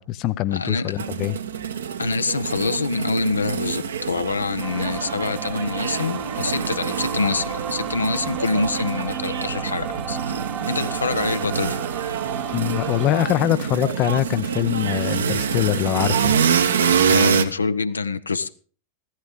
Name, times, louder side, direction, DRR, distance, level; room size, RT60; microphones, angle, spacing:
voice 1, 0.0-1.4 12.5-16.4, left 14 dB, 35° left, 0.6 m, -23 dB
voice 2, 0.5-1.0 2.0-10.2 10.7-11.8 17.1-18.5, left 4 dB, 75° left, 0.8 m, -25 dB
sound 1, 1.0-17.4, right 7 dB, 65° right, 1.2 m, -26 dB
sound 2, 4.6-13.1, right 8 dB, 25° right, 1.1 m, -33 dB
15.5 x 14.5 x 3.6 m
figure-of-eight pair, 90°, 0 cm